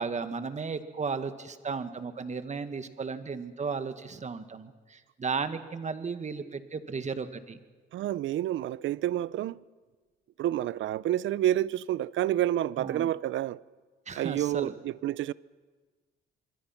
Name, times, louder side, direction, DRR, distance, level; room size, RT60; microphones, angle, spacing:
voice 1, 0.0-7.6 12.8-13.1 14.1-14.7, right 5 dB, 35° right, 1.8 m, -35 dB
voice 2, 7.9-9.6 10.4-13.6 14.2-15.3, right 13 dB, 75° right, 0.7 m, -29 dB
26.5 x 23.0 x 5.9 m
cardioid pair, 90°, 20 cm